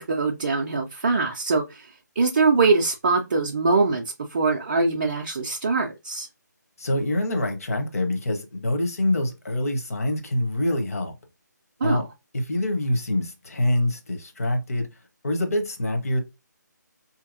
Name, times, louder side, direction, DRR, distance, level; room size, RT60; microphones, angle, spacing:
voice 1, 0.0-1.9 2.2-4.0 4.3-6.3 11.8-12.1, right 4 dB, 30° right, 0.4 m, -23 dB
voice 2, 6.8-11.1 11.8-12.0 12.3-14.9 15.2-16.2, left 1 dB, 55° left, 0.9 m, -25 dB
4.3 x 2.8 x 2.5 m
figure-of-eight pair, 150°, 10 cm